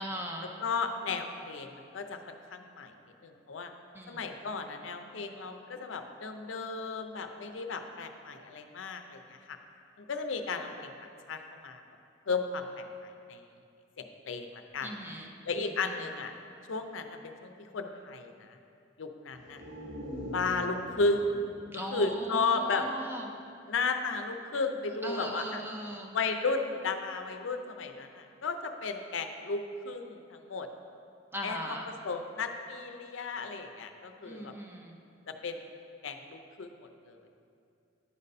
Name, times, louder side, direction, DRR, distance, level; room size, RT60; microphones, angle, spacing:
voice 1, 0.0-0.5 3.9-4.3 14.8-15.9 21.7-23.3 25.0-26.1 31.3-31.9 34.3-35.0, equal, 10° right, 1 dB, 0.7 m, -39 dB
voice 2, 0.6-2.9 3.2-3.7 4.1-9.6 10.0-10.9 11.3-11.8 12.3-13.4 14.0-14.9 15.4-16.3 16.7-18.6 19.0-19.6 20.3-21.3 21.7-22.9 23.7-25.6 26.1-30.7 31.4-31.8 32.0-34.5 35.3-35.6 36.0-36.7 37.1-37.2, left 4 dB, 85° left, 6 dB, 0.5 m, -34 dB
sound 1, 19.3-23.1 23.4-23.5, equal, 65° right, 1.9 m, -44 dB
9.7 x 4.1 x 5.4 m, 2.5 s
head